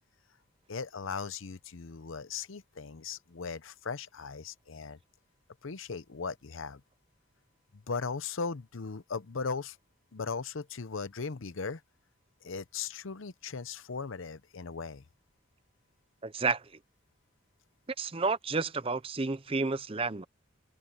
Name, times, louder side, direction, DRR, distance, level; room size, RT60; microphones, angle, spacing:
voice 1, 0.7-5.0 5.6-6.8 7.7-9.8 10.1-11.8 12.4-15.0, left 5 dB, 75° left, 0.8 m, -38 dB
voice 2, 16.2-16.7 18.0-20.2, right 4 dB, 25° right, 0.6 m, -31 dB
head